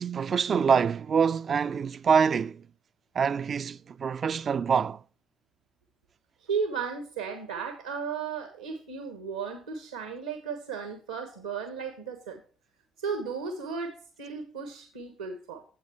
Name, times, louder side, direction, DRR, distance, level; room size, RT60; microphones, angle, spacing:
voice 1, 0.0-2.6 3.1-5.0, right 6 dB, 45° right, 0.5 m, -25 dB
voice 2, 6.5-12.4 13.0-15.6, right 5 dB, 80° right, 1.2 m, -35 dB
10.0 x 7.8 x 3.4 m
figure-of-eight pair, 45°, 0 cm